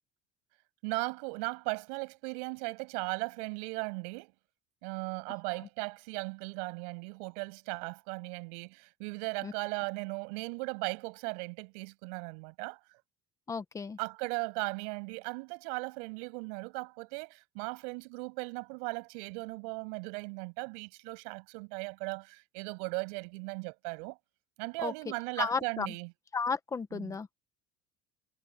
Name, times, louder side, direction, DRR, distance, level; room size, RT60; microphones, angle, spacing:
voice 1, 0.8-4.3 4.8-12.8 14.0-24.2 24.6-26.1 26.9-27.2, right 35 dB, 85° right, 7.6 m, -37 dB
voice 2, 13.5-14.0 24.8-25.9 26.3-27.3, left 5 dB, 15° left, 1.2 m, -34 dB
cardioid pair, 160°, 20 cm